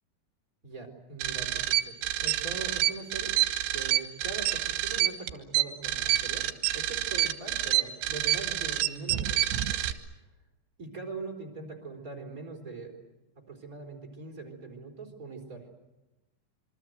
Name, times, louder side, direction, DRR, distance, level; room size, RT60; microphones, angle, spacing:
voice 1, 0.6-3.3 3.7-6.5 6.7-10.2 10.8-12.9 13.4-15.6, right 4 dB, 20° right, 2 dB, 3.9 m, -42 dB
sound 1, 1.2-9.9, right 14 dB, 75° right, 3.3 m, -28 dB
27.0 x 24.0 x 8.0 m, 1.0 s
omnidirectional pair, 5.3 m